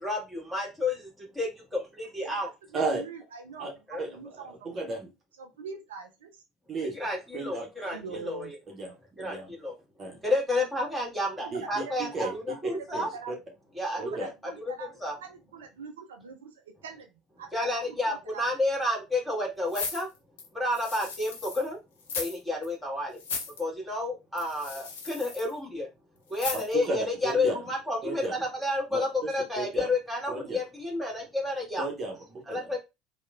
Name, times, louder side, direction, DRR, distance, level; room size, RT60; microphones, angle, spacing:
voice 1, 0.0-2.5 3.9-4.1 6.9-8.5 9.2-9.7 10.2-13.1 13.8-14.1 14.7-14.8 15.0-15.1 17.5-20.1 20.5-21.8 22.1-23.2 23.6-25.9 26.3-31.9 32.5-32.8, left 2 dB, 5° right, -3 dB, 1.5 m, -30 dB
voice 2, 2.2-4.5 5.4-6.4 7.9-8.5 11.4-11.9 12.2-12.6 12.9-13.3 14.2-14.9 15.2-17.1 17.4-17.7 18.1-18.4, right 5 dB, 75° right, 3 dB, 0.3 m, -43 dB
voice 3, 4.7-5.0 6.7-6.9 7.3-7.7 8.1-8.2 8.7-9.5 10.0-10.2 11.5-12.3 12.9-13.3 14.0-14.3 26.5-27.5 28.0-28.3 28.9-29.9 30.3-30.6 31.8-32.7, right 2 dB, 35° right, 0 dB, 0.7 m, -34 dB
sound 1, 19.7-21.7 22.0-22.4 22.6-22.7 23.2-23.6 24.4-25.5 26.3-26.8 27.3-27.4, left 5 dB, 75° left, 0.5 m, -36 dB
2.9 x 2.1 x 2.3 m, 0.24 s
figure-of-eight pair, 65°, 0 cm